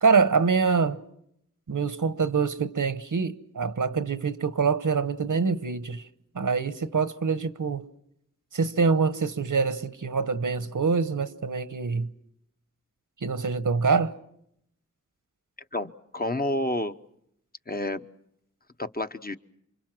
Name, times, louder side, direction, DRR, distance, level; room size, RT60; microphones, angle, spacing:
voice 1, 0.0-1.0 1.7-6.0 6.3-7.9 8.5-12.1 13.2-14.1, right 5 dB, 80° right, 1.0 m, -25 dB
voice 2, 15.7-16.9 17.7-18.0 18.8-19.4, left 1 dB, 30° left, 0.9 m, -29 dB
28.0 x 25.0 x 6.1 m
wide cardioid pair, 50°, 31 cm